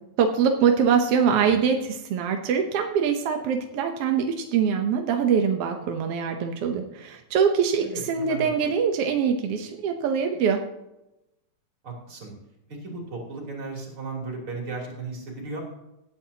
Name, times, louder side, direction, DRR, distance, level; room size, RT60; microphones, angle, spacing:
voice 1, 0.2-10.6, right 7 dB, 70° right, 4 dB, 1.4 m, -23 dB
voice 2, 7.8-8.7 11.8-12.3 12.8-15.6, right 3 dB, 40° right, -1 dB, 3.9 m, -35 dB
17.5 x 10.0 x 2.9 m, 0.91 s
omnidirectional pair, 3.7 m